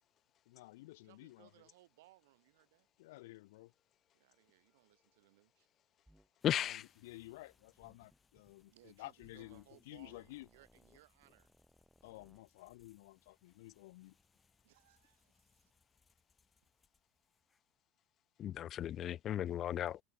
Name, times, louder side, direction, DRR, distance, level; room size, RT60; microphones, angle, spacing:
voice 1, 0.5-1.5 3.0-3.7 6.6-10.5 12.0-14.2, left 20 dB, 65° left, 2.1 m, -53 dB
voice 2, 1.0-2.9 4.1-5.7 8.7-11.5 14.6-15.7, right 18 dB, 65° right, 4.0 m, -66 dB
sound 1, 6.1-6.3 6.6-6.8 7.8-8.5 9.2-9.7 10.0-12.4, right 1 dB, 5° right, 7.9 m, -68 dB
voice 3, 6.4-6.8 18.4-20.0, left 11 dB, 40° left, 0.4 m, -36 dB
sound 2, 6.4-17.8, left 4 dB, 20° left, 5.9 m, -75 dB
figure-of-eight pair, 75°, 0 cm